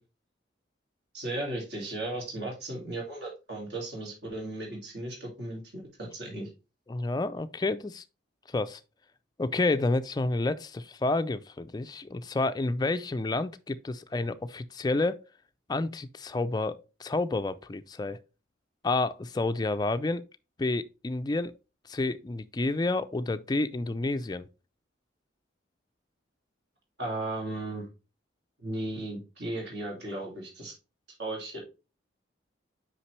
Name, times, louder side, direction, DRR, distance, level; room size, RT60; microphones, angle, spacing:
voice 1, 1.1-6.5 27.0-27.9 28.6-30.7 31.2-31.6, right 2 dB, 60° right, 2.5 m, -36 dB
voice 2, 6.9-8.0 8.5-8.8 9.4-15.2 15.7-16.7 17.0-18.2 18.8-20.2 20.6-21.5 21.9-24.5, left 2 dB, 20° left, 0.3 m, -29 dB
5.8 x 5.2 x 3.1 m
head